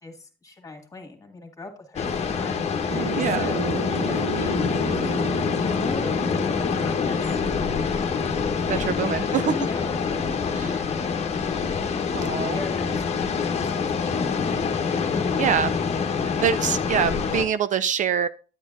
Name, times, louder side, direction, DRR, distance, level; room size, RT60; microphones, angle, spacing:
voice 1, 0.0-7.4 8.7-10.4 10.7-11.0 12.5-13.2 13.5-14.3, left 2 dB, 20° left, 4 dB, 1.9 m, -39 dB
sound 1, 2.0-17.5, left 5 dB, 40° left, 1.0 m, -26 dB
sound 2, 2.9-10.1, right 4 dB, 75° right, 2.9 m, -35 dB
voice 2, 3.1-3.5 8.7-9.6 10.6-10.7 12.1-12.6 15.4-15.7 16.4-18.3, right 8 dB, 50° right, 14 dB, 0.4 m, -24 dB
9.3 x 8.7 x 2.5 m, 0.37 s
cardioid pair, 110°, 17 cm